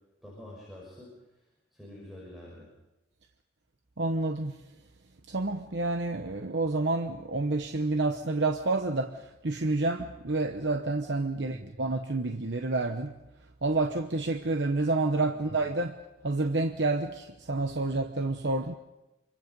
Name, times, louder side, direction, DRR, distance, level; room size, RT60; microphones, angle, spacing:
voice 1, 0.2-1.4 1.7-2.7 11.4-11.7, left 1 dB, ahead, 5.7 m, -47 dB
voice 2, 4.0-4.6 5.3-13.1 13.6-16.0 16.2-18.7, right 2 dB, 65° right, 1.0 m, -29 dB
27.0 x 24.0 x 5.4 m
head